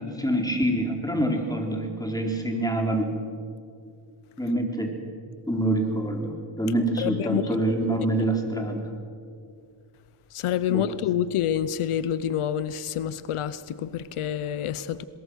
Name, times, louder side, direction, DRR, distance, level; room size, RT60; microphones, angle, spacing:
voice 1, 0.0-3.2 4.4-4.9 5.5-8.9 10.7-10.8, right 1 dB, 5° left, 3.8 m, -26 dB
voice 2, 7.0-7.5 10.3-15.0, left 10 dB, 85° left, 0.8 m, -27 dB
22.5 x 21.0 x 6.4 m
cardioid pair, 75°, 49 cm